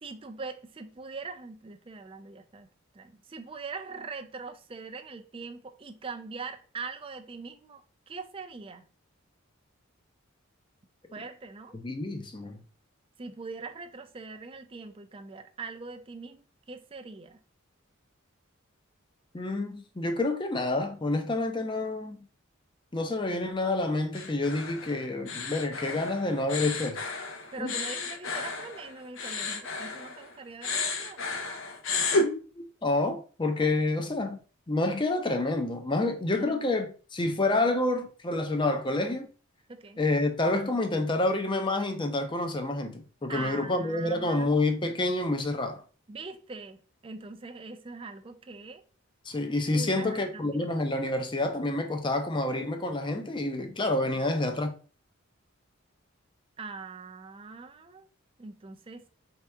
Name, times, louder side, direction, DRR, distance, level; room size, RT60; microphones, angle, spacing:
voice 1, 0.0-2.7 2.9-7.8 8.1-8.9 11.1-11.8 13.2-17.4 27.5-31.2 36.3-36.7 39.7-40.0 43.3-44.6 46.1-48.8 49.7-50.7 54.1-54.3 56.6-58.1 58.4-59.0, right 4 dB, 25° right, 0.4 m, -42 dB
voice 2, 11.7-12.6 19.3-22.2 22.9-27.0 27.6-27.7 32.2-34.4 34.7-39.3 40.0-45.8 49.3-54.7, left 2 dB, 20° left, 0.5 m, -28 dB
sound 1, 24.1-30.3 30.6-32.3, left 3 dB, 70° left, 0.7 m, -32 dB
4.6 x 2.8 x 3.3 m
head